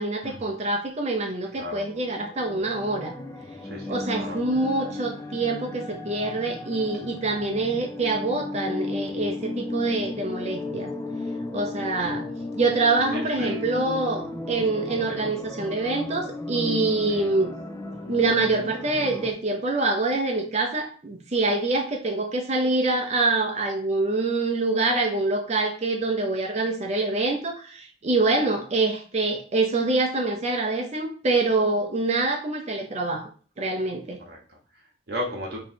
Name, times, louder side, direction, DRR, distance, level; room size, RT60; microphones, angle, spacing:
voice 1, 0.0-3.1 3.9-10.9 11.5-12.3 12.6-17.5 18.1-33.3 33.6-34.2, right 3 dB, 40° right, 3 dB, 0.6 m, -25 dB
sound 1, 1.6-19.3, left 2 dB, 15° left, 0.3 m, -35 dB
voice 2, 3.6-4.5 12.0-12.1 13.1-13.7 15.0-15.2 17.1-17.3 34.3-35.6, equal, 60° right, -1 dB, 0.9 m, -36 dB
3.1 x 2.7 x 4.1 m, 0.41 s
head